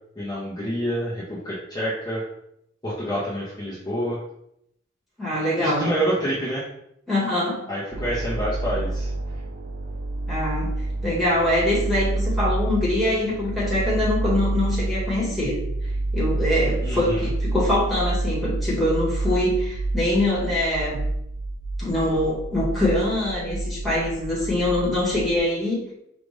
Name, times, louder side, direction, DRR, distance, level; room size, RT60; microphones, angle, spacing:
voice 1, 0.2-2.2 2.8-4.2 5.6-6.7 7.7-9.1 16.8-17.3, equal, 20° left, -8 dB, 0.8 m, -27 dB
voice 2, 5.2-5.9 7.1-7.7 10.3-10.7 11.0-15.6 16.1-21.0 21.8-25.9, left 1 dB, ahead, -7 dB, 1.3 m, -24 dB
sound 1, 7.9-25.4, right 2 dB, 50° right, 0.5 m, -28 dB
5.1 x 2.5 x 3.2 m, 0.77 s
head